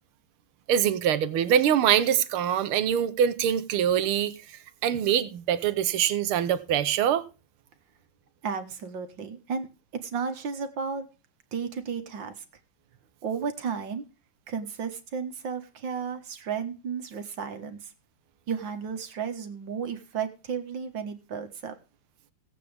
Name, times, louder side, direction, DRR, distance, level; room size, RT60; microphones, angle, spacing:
voice 1, 0.7-7.2, right 9 dB, 80° right, 1.7 m, -24 dB
voice 2, 8.4-9.7 9.9-11.1 11.5-12.4 13.2-14.0 14.5-17.9 18.5-21.7, right 6 dB, 60° right, 2.0 m, -33 dB
17.0 x 8.4 x 3.4 m
omnidirectional pair, 2.4 m